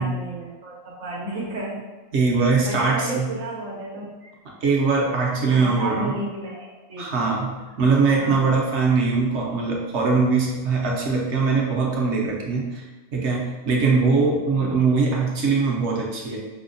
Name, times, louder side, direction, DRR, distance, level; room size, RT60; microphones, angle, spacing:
voice 1, 0.0-1.8 2.3-4.3 5.4-7.3 8.1-8.5 14.5-14.8, right 2 dB, 80° right, -5 dB, 1.2 m, -33 dB
voice 2, 2.1-3.3 4.6-6.1 7.0-12.8 13.1-16.4, right 4 dB, 60° right, -2 dB, 0.9 m, -21 dB
5.5 x 2.2 x 2.5 m, 1.2 s
omnidirectional pair, 1.4 m